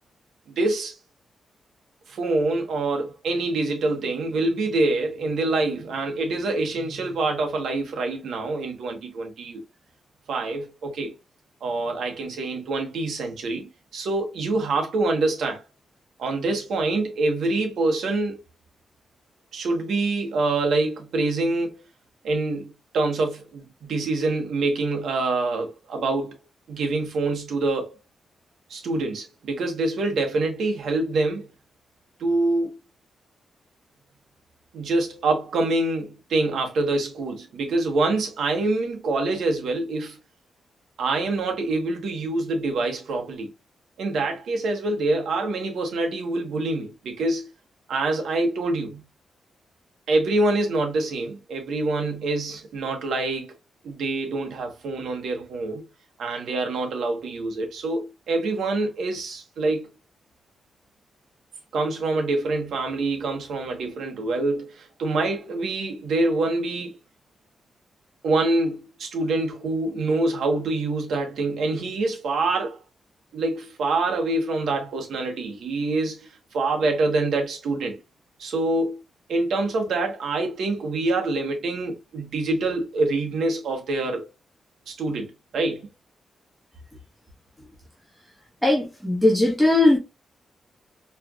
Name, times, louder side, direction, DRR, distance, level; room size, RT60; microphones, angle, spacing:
voice 1, 0.5-0.9 2.1-9.6 10.3-11.1 11.6-15.6 16.2-18.4 19.5-21.7 22.2-26.4 26.7-28.0 28.7-31.5 32.2-32.8 34.7-40.2 41.0-43.5 44.0-47.5 47.9-49.0 50.1-53.5 53.8-55.9 56.2-59.9 61.7-66.9 68.2-72.8 73.3-76.2 76.5-78.0 78.4-79.0 79.3-84.3 84.9-85.9, right 2 dB, 80° right, 1.3 m, -25 dB
voice 2, 88.6-90.0, left 2 dB, ahead, 1.4 m, -19 dB
4.5 x 3.3 x 2.4 m
wide cardioid pair, 135°, 0 cm